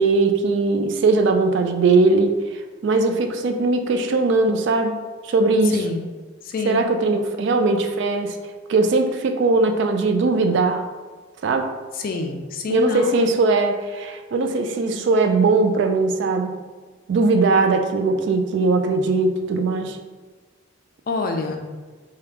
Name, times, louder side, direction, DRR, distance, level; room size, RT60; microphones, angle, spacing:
voice 1, 0.0-5.0 5.2-5.8 6.6-8.4 8.7-10.8 11.4-11.7 12.7-16.6 17.1-20.0, right 3 dB, 60° right, 6 dB, 0.3 m, -20 dB
voice 2, 6.4-6.8 12.0-13.2 21.1-21.7, left 3 dB, 45° left, 4 dB, 0.3 m, -27 dB
3.0 x 2.3 x 3.3 m, 1.4 s
head